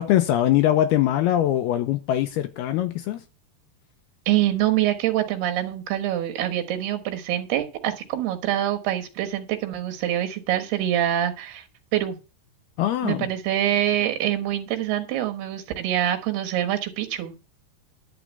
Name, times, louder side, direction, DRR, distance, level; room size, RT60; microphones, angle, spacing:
voice 1, 0.0-3.2 12.8-13.3, left 12 dB, 80° left, 2.6 m, -22 dB
voice 2, 4.3-11.6 11.9-12.2 13.0-17.3, right 12 dB, 75° right, 3.3 m, -25 dB
11.5 x 4.8 x 8.2 m
omnidirectional pair, 4.8 m